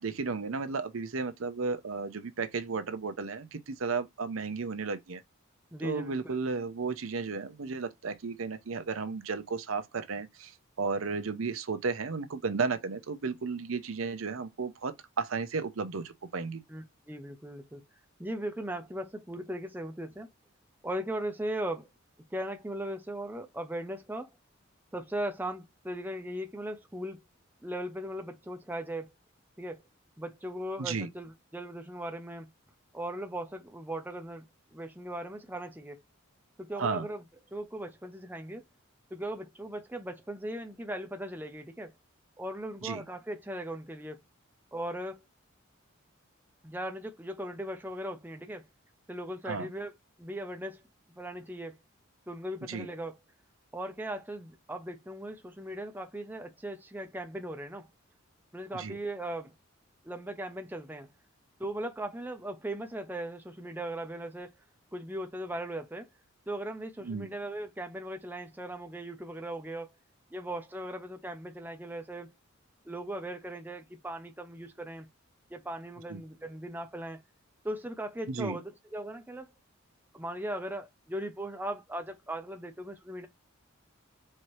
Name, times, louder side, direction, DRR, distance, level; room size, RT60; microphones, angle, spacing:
voice 1, 0.0-5.2 5.8-16.6 30.8-31.1 36.8-37.1 42.8-43.0 49.4-49.7 52.7-52.9 58.7-59.0 67.0-67.3 76.1-76.2 78.3-78.6, right 4 dB, 70° right, 0.7 m, -34 dB
voice 2, 5.7-6.1 16.7-17.8 18.2-20.3 20.8-21.9 22.3-24.3 24.9-27.2 27.6-29.1 29.6-29.8 30.2-32.5 32.9-36.0 36.6-37.2 37.5-38.6 39.1-41.9 42.4-44.2 44.7-45.2 46.6-48.7 49.1-49.9 50.2-50.8 51.1-51.8 52.3-53.2 53.7-57.9 58.5-59.5 60.0-61.1 61.6-64.5 64.9-66.1 66.5-69.9 70.3-72.3 72.8-75.1 75.5-77.2 77.6-79.5 80.1-83.3, right 1 dB, 10° right, 0.6 m, -38 dB
4.3 x 2.8 x 3.1 m
head